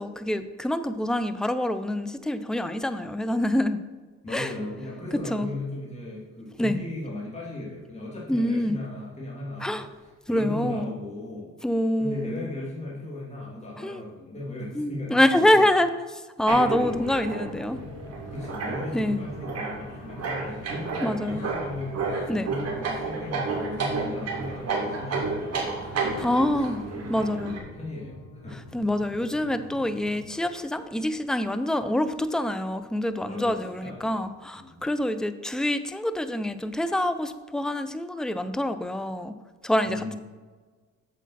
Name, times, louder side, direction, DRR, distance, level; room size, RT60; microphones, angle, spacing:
voice 1, 0.0-3.8 4.3-4.5 5.3-5.5 6.6-6.8 8.3-8.8 9.6-9.9 10.3-10.9 11.6-12.5 13.8-14.0 14.7-17.8 18.9-19.2 21.0-21.5 22.3-22.5 26.2-26.8 27.1-27.6 28.5-39.3 39.6-40.2, left 1 dB, ahead, 11 dB, 0.5 m, -26 dB
voice 2, 4.2-9.8 10.3-11.5 12.0-15.7 16.5-17.4 18.3-22.0 22.4-28.6 33.3-34.2 34.5-34.8 39.8-40.2, left 1 dB, 20° left, -5 dB, 2.7 m, -37 dB
sound 1, 16.5-27.6, right 4 dB, 55° right, 2.4 m, -32 dB
sound 2, 16.7-30.3, left 4 dB, 85° left, 1.2 m, -45 dB
8.4 x 7.2 x 4.2 m, 1.4 s
cardioid pair, 90°, 30 cm